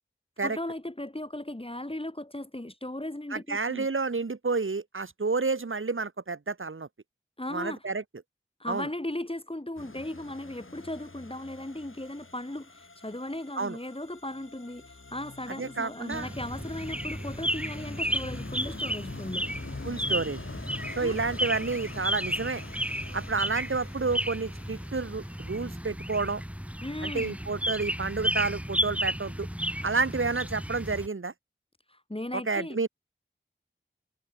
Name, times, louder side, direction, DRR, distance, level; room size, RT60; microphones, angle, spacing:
voice 1, 0.4-3.9 7.4-7.8 8.6-19.5 21.0-21.2 26.8-27.4 31.9-32.8, left 1 dB, 25° left, 4.2 m, -37 dB
voice 2, 3.3-6.9 7.5-8.0 8.7-8.9 13.6-13.8 15.6-16.3 19.8-20.4 21.0-22.6 23.1-26.4 27.0-29.5 29.8-31.3 32.3-32.9, right 4 dB, 80° right, 1.7 m, -30 dB
sound 1, 9.8-25.9, left 3 dB, 85° left, 7.2 m, -45 dB
sound 2, 16.1-31.1, equal, 5° right, 7.5 m, -33 dB
wide cardioid pair, 45°, 21 cm